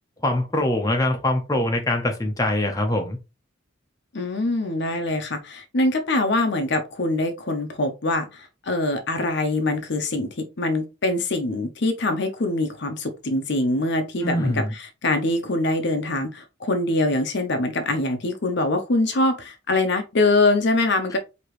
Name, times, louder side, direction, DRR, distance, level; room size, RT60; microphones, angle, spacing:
voice 1, 0.2-3.2 14.2-14.7, left 1 dB, 15° left, 0.8 m, -23 dB
voice 2, 4.1-21.2, left 2 dB, 60° left, 0.7 m, -24 dB
4.8 x 2.9 x 3.1 m
head